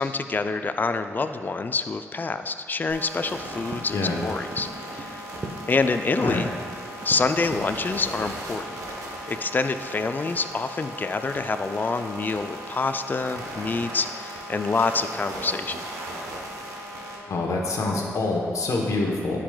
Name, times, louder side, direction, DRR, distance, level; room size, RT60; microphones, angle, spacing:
voice 1, 0.0-5.2 5.7-6.5 7.0-8.8 9.3-15.8, left 4 dB, 35° left, 9 dB, 0.3 m, -27 dB
Run, 2.9-7.7, right 2 dB, 40° right, 0.8 m, -39 dB
sound 1, 2.9-17.2, right 1 dB, 85° right, 0.9 m, -37 dB
voice 2, 17.3-19.4, left 2 dB, 70° left, 0 dB, 1.0 m, -26 dB
9.9 x 4.8 x 2.3 m, 2.4 s
cardioid pair, 50°, 6 cm